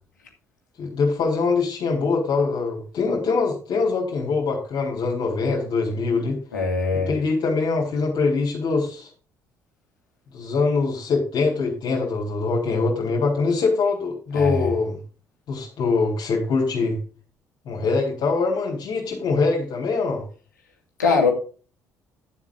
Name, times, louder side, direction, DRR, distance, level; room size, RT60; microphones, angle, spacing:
voice 1, 0.8-6.4 7.1-9.1 10.3-15.0 15.5-17.0 17.7-20.2, left 4 dB, 55° left, -3 dB, 3.8 m, -23 dB
voice 2, 6.5-7.2 14.3-14.7 21.0-21.3, left 4 dB, 85° left, 1 dB, 2.3 m, -21 dB
12.0 x 7.3 x 3.9 m, 0.37 s
figure-of-eight pair, 50°, 9 cm